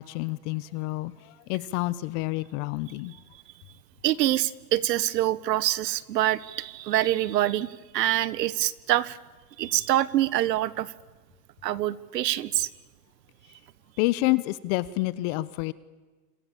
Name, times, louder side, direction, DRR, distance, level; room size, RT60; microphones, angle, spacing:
voice 1, 0.0-3.1 14.0-15.7, left 20 dB, 45° left, 17 dB, 0.9 m, -28 dB
voice 2, 4.0-9.2 9.6-10.9 11.6-12.7, right 14 dB, 85° right, 18 dB, 1.4 m, -25 dB
27.5 x 27.5 x 7.2 m, 1.4 s
supercardioid pair, 130°, 49 cm